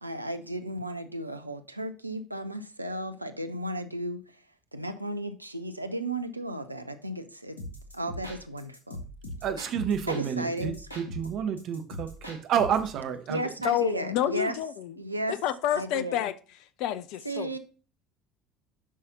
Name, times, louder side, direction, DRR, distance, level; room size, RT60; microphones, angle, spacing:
voice 1, 0.0-4.4 4.7-7.6 7.9-9.0 10.1-10.8 13.3-14.6 15.0-15.4 15.7-16.2 17.2-17.6, right 1 dB, 90° right, 0.6 m, -34 dB
sound 1, 7.6-10.3 10.6-12.9, left 1 dB, 85° left, 1.6 m, -41 dB
voice 2, 9.4-13.7, right 8 dB, 50° right, 1.1 m, -30 dB
voice 3, 13.6-14.9 15.3-16.3 16.8-17.6, left 11 dB, 55° left, 0.5 m, -29 dB
8.3 x 5.6 x 4.0 m
figure-of-eight pair, 60°, 0 cm